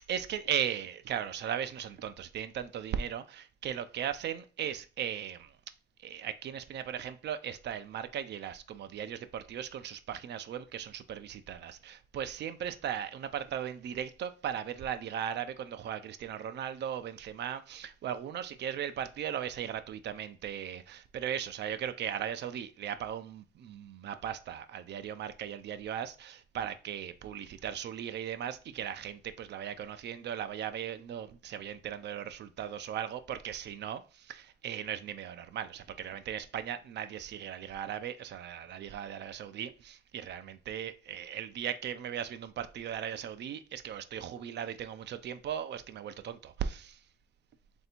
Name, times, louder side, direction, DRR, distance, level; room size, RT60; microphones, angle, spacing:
voice 1, 0.1-5.5 6.0-46.9, right 9 dB, 60° right, 0.4 m, -37 dB
3.3 x 2.7 x 4.3 m
cardioid pair, 90°, 20 cm